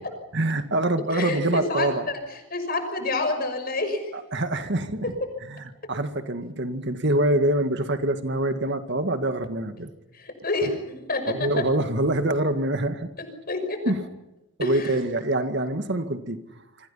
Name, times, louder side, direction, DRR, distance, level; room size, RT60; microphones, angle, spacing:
voice 1, 0.1-2.1 4.1-5.2 5.5-9.9 11.3-13.1 13.9-14.0 14.6-16.4, right 1 dB, 55° right, 8 dB, 2.1 m, -25 dB
voice 2, 1.1-1.9 2.5-4.0 10.1-11.5 13.2-13.8 14.6-15.0, left 3 dB, 45° left, 7 dB, 6.0 m, -28 dB
29.0 x 25.0 x 5.8 m, 0.96 s
head